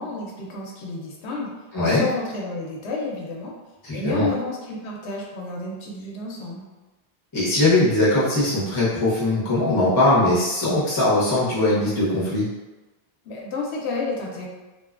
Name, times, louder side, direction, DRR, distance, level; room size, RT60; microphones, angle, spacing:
voice 1, 0.0-1.5 1.8-3.5 3.9-6.7 13.3-14.5, left 3 dB, 85° left, -2 dB, 0.9 m, -30 dB
voice 2, 1.7-2.0 3.8-4.3 7.3-12.4, left 2 dB, 25° left, -9 dB, 0.6 m, -20 dB
2.7 x 2.2 x 2.4 m, 1.2 s
omnidirectional pair, 1.1 m